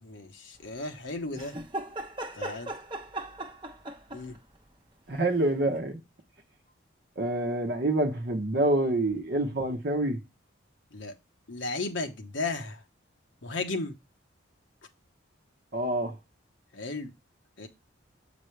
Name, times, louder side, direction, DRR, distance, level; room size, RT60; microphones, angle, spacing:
voice 1, 0.0-1.6 2.3-2.7 4.1-4.4 10.9-11.1 11.5-12.8 13.4-13.9 16.7-17.1 17.6-17.7, left 3 dB, 65° left, 1.0 m, -34 dB
sound 1, 1.4-4.4 5.7-5.8, right 1 dB, 25° right, 0.9 m, -38 dB
voice 2, 5.1-6.0 7.2-10.2 15.7-16.2, right 1 dB, 50° right, 0.9 m, -27 dB
7.8 x 5.1 x 3.2 m
head